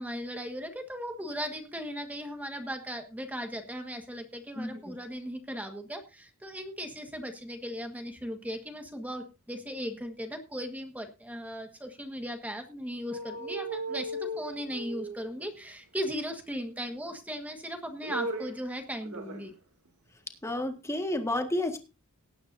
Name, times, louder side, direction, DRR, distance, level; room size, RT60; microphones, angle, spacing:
voice 1, 0.0-19.5, equal, 5° right, 5 dB, 1.5 m, -37 dB
voice 2, 4.6-4.9 20.4-21.8, left 1 dB, 15° left, 5 dB, 1.7 m, -31 dB
sound 1, 13.1-15.7 16.9-17.5 17.8-18.7 19.0-19.5 19.8-19.9, right 1 dB, 90° right, 2.6 m, -37 dB
18.5 x 9.4 x 2.7 m, 0.28 s
head